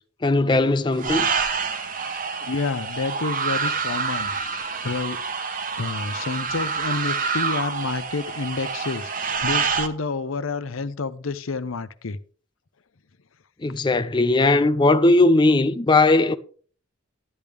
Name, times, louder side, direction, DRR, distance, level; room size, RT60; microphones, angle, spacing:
voice 1, 0.2-1.3 13.6-16.4, left 2 dB, 25° left, 0.4 m, -18 dB
sound 1, 1.0-9.9, right 5 dB, 40° right, 1.0 m, -27 dB
voice 2, 2.4-5.2 5.8-9.1 9.4-12.2, left 3 dB, 85° left, 0.7 m, -29 dB
12.0 x 10.5 x 3.4 m
head